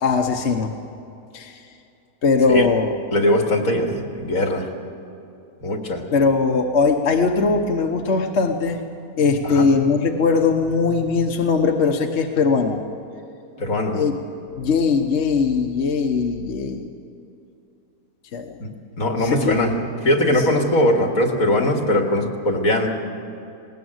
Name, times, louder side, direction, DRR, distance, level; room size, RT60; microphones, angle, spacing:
voice 1, 0.0-0.7 1.3-1.6 2.2-2.9 6.1-8.8 9.2-12.8 13.9-14.2 14.6-16.9 18.3-18.5 19.2-19.6, left 4 dB, 50° left, 3 dB, 1.3 m, -20 dB
voice 2, 3.1-4.7 5.6-6.0 9.4-9.7 13.6-14.0 18.6-18.7 19.0-19.7 20.0-22.9, left 1 dB, 70° left, 3 dB, 2.4 m, -20 dB
19.5 x 19.0 x 7.9 m, 2.7 s
omnidirectional pair, 1.6 m